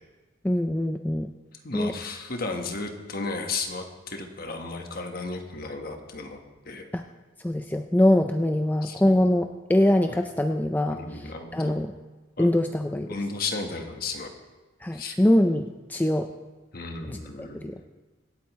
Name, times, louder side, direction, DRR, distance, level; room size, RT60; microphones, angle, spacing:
voice 1, 0.4-1.3 1.7-1.9 6.9-7.0 7.4-11.9 12.4-13.1 14.8-16.3 17.1-17.8, left 1 dB, 10° left, 5 dB, 0.3 m, -23 dB
voice 2, 1.6-6.4 6.7-6.9 8.8-9.2 10.1-10.2 10.9-11.8 12.4-12.5 13.1-14.3 14.9-15.2 16.7-17.7, left 3 dB, 50° left, 4 dB, 1.3 m, -34 dB
25.0 x 8.6 x 3.2 m, 1.2 s
head